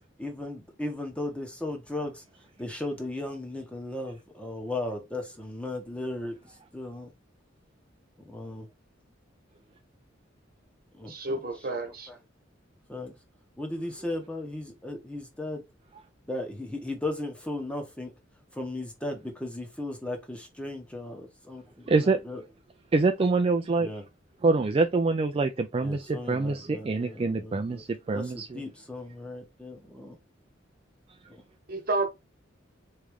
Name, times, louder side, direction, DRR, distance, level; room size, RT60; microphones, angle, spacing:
voice 1, 0.0-2.2 2.6-7.1 8.2-8.7 10.9-11.8 12.1-12.2 12.9-13.1 13.6-15.6 16.3-18.1 18.5-22.5 23.8-24.0 25.8-27.8 28.1-30.2 31.3-31.4, left 2 dB, 5° left, 0.9 m, -36 dB
voice 2, 11.0-12.1 31.7-32.1, right 2 dB, 50° right, 1.2 m, -30 dB
voice 3, 21.9-22.2 22.9-23.9 24.4-28.6, right 3 dB, 30° right, 0.4 m, -25 dB
3.6 x 3.2 x 3.4 m
head